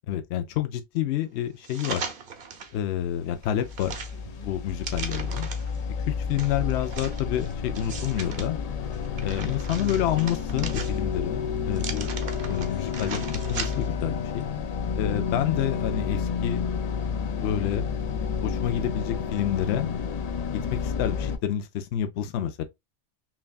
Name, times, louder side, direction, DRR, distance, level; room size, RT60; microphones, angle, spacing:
voice 1, 0.1-2.1 2.7-3.9 4.4-5.5 6.1-8.6 9.2-12.1 12.5-14.5 15.0-16.7 17.3-17.8 18.4-19.9 20.7-22.6, left 10 dB, 75° left, 0.8 m, -28 dB
sound 1, 1.6-2.8 3.2-5.8 6.4-8.5 8.9-11.2 11.7-14.0 14.4-14.5, right 5 dB, 55° right, 0.8 m, -38 dB
sound 2, 2.9-21.4, left 6 dB, 60° left, 0.4 m, -30 dB
5.9 x 2.3 x 2.3 m
omnidirectional pair, 1.2 m